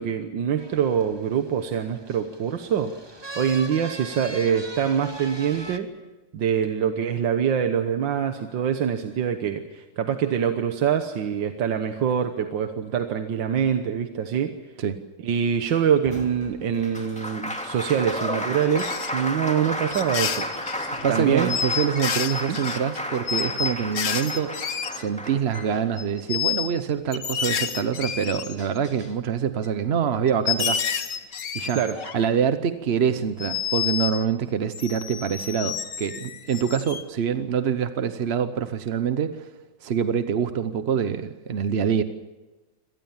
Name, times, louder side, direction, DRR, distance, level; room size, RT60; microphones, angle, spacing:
voice 1, 0.0-2.9 3.4-5.9 6.3-14.5 15.2-20.5 21.1-21.5 22.5-22.6 31.7-32.0, right 8 dB, 85° right, 7 dB, 1.8 m, -24 dB
sound 1, 0.6-5.8, right 1 dB, 15° right, 1.0 m, -40 dB
Applause, 16.0-26.3 27.7-27.8 28.1-29.1, equal, 5° left, 2.4 m, -33 dB
sound 2, 18.8-19.1 19.9-21.1 21.5-25.2 25.5-25.7 26.0-26.8 27.1-28.9 29.6-29.7 30.3-32.3 33.4-34.2 34.7-37.0, left 8 dB, 75° left, 1.9 m, -29 dB
voice 2, 21.0-24.6 24.9-30.8 31.5-31.8 32.1-39.5 39.8-42.0, right 7 dB, 50° right, 10 dB, 0.8 m, -25 dB
25.5 x 18.5 x 7.2 m, 1.1 s
omnidirectional pair, 2.0 m